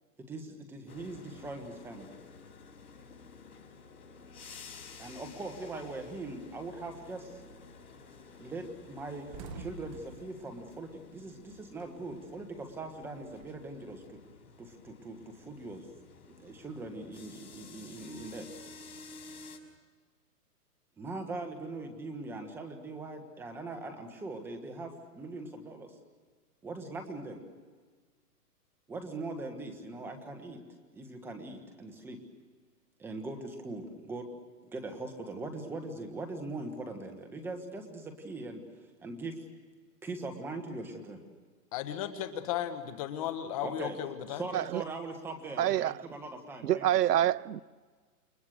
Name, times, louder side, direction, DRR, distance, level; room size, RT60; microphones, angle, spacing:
voice 1, 0.2-2.1 5.0-7.4 8.4-14.2 14.6-15.9 16.3-18.5 21.0-25.9 26.6-27.4 28.9-30.6 30.9-32.2 33.0-34.3 34.6-38.6 39.0-39.4 40.0-41.2 43.6-44.0 44.3-47.3, right 2 dB, 5° right, 1.4 m, -41 dB
sound 1, 0.9-19.6, left 4 dB, 70° left, 5.6 m, -52 dB
sound 2, 7.9-8.1 8.3-8.5 8.8-11.8 12.1-13.7, right 3 dB, 20° right, 1.8 m, -48 dB
voice 2, 41.7-44.4, left 10 dB, 20° left, 1.4 m, -35 dB
voice 3, 45.6-45.9 46.6-47.6, right 12 dB, 75° right, 0.7 m, -27 dB
29.0 x 23.0 x 6.6 m
hypercardioid pair, 160°, 47 cm